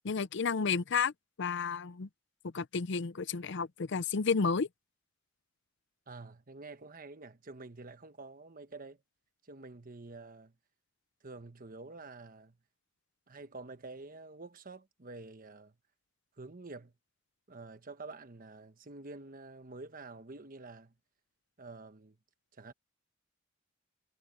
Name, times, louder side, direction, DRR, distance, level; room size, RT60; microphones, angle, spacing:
voice 1, 0.0-1.1 1.4-2.1 2.4-4.7, left 5 dB, 65° left, 0.6 m, -31 dB
voice 2, 6.1-9.0 9.4-10.5 11.2-12.6 13.3-15.8 16.4-16.9 17.5-20.9 21.6-22.2 22.5-22.7, right 3 dB, 45° right, 1.2 m, -48 dB
head